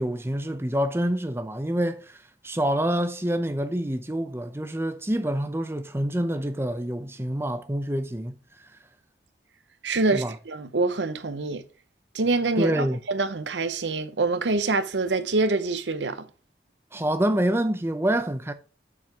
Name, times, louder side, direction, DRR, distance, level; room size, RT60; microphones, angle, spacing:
voice 1, 0.0-2.2 2.4-8.4 10.1-10.3 12.6-13.0 16.9-18.5, right 1 dB, 15° right, 0.7 m, -26 dB
voice 2, 9.8-11.6 12.1-16.3, right 3 dB, 85° right, 0.8 m, -25 dB
7.2 x 4.7 x 4.6 m
head